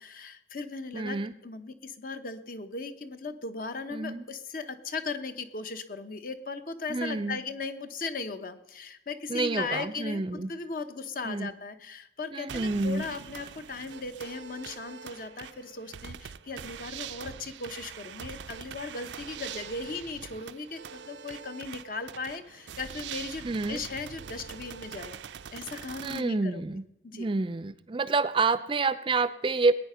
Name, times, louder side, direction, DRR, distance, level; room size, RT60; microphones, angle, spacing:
voice 1, 0.0-1.2 1.4-25.2 25.5-26.8 27.0-27.3, left 4 dB, 50° left, 9 dB, 1.0 m, -37 dB
voice 2, 0.9-1.3 3.9-4.3 6.9-7.4 9.3-10.5 11.2-11.5 12.3-13.1 23.4-23.8 26.0-26.8 27.1-29.7, right 3 dB, 30° right, 14 dB, 0.4 m, -28 dB
sound 1, 12.5-26.2, right 8 dB, 85° right, 0.5 m, -43 dB
20.0 x 9.1 x 5.7 m, 0.90 s
head